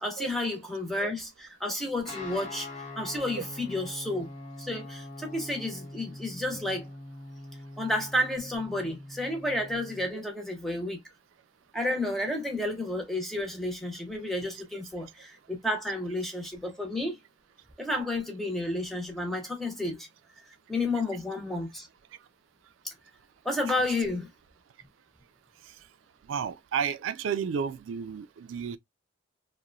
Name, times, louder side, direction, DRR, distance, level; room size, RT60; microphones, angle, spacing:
voice 1, 0.0-2.7 3.0-4.3 4.6-6.9 7.8-11.0 11.7-17.2 17.8-20.1 20.7-21.9 23.4-24.3, left 1 dB, ahead, 0.7 m, -31 dB
Guitar, 2.0-10.1, left 2 dB, 40° left, 0.9 m, -43 dB
voice 2, 26.3-28.8, right 7 dB, 85° right, 0.3 m, -31 dB
2.8 x 2.1 x 2.5 m
head